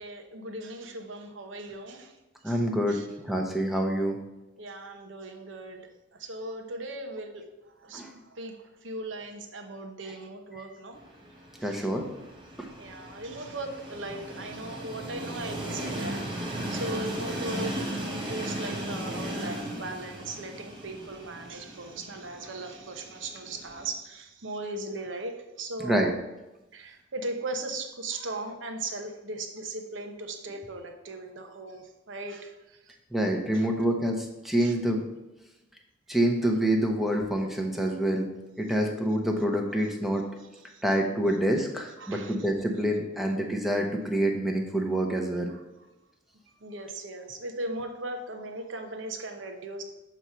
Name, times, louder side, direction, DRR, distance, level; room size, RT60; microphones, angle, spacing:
voice 1, 0.0-2.2 2.4-2.6 2.9-3.1 4.6-7.4 7.8-11.0 11.6-11.9 12.8-17.8 18.1-26.1 26.7-33.0 33.5-33.7 34.6-34.7 40.7-40.8 42.0-42.5 45.5-45.9 46.6-49.8, right 2 dB, 80° right, 4 dB, 0.9 m, -38 dB
voice 2, 2.4-3.0 3.2-4.2 7.9-8.1 11.6-12.1 12.6-12.7 25.8-26.1 33.1-35.0 36.1-38.3 38.6-40.3 40.8-45.5, right 1 dB, ahead, 1 dB, 0.8 m, -27 dB
Train, 10.9-23.9, right 1 dB, 25° right, 1.1 m, -37 dB
7.2 x 3.1 x 5.6 m, 0.98 s
head